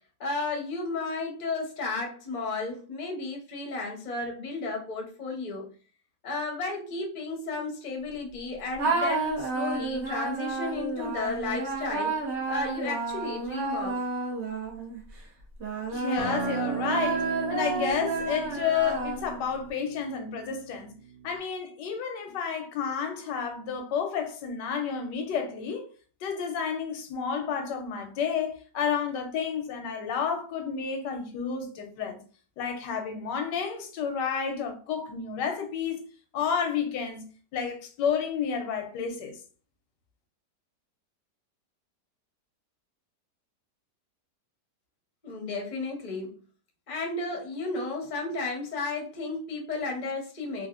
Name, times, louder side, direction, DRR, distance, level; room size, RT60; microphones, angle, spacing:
voice 1, 0.2-5.7 6.2-12.1 12.5-14.0 45.2-46.3 46.9-50.7, left 3 dB, 40° left, 0.7 m, -33 dB
sound 1, 8.8-15.0 15.6-19.5, right 3 dB, 50° right, 0.9 m, -31 dB
voice 2, 15.9-20.9 21.2-25.9 26.2-32.2 32.6-36.0 36.3-39.4, left 6 dB, 90° left, 1.3 m, -31 dB
Acoustic guitar, 16.2-21.4, right 7 dB, 75° right, 1.2 m, -36 dB
3.3 x 2.4 x 2.4 m
omnidirectional pair, 1.8 m